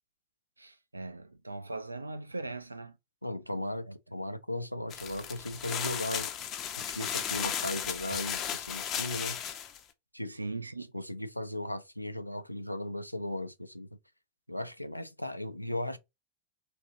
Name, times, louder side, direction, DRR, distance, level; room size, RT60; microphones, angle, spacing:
voice 1, 0.6-3.0 3.9-4.0 10.3-10.9, right 2 dB, 80° right, 0.4 m, -40 dB
voice 2, 3.2-6.3 6.9-9.4 10.1-10.4 10.9-13.9 14.5-16.0, left 1 dB, 90° left, 0.4 m, -36 dB
sound 1, 4.9-9.8, left 9 dB, 35° left, 0.5 m, -35 dB
3.3 x 2.8 x 2.6 m
figure-of-eight pair, 90°, 0 cm